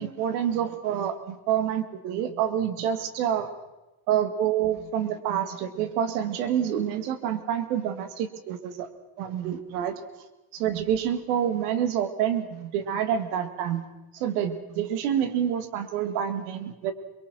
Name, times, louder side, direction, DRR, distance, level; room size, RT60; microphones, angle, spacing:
voice 1, 0.0-3.5 4.1-8.9 9.2-10.0 10.5-13.8 14.1-16.9, right 9 dB, 85° right, 9 dB, 2.0 m, -27 dB
23.5 x 22.0 x 6.1 m, 1.1 s
supercardioid pair, 80°, 44 cm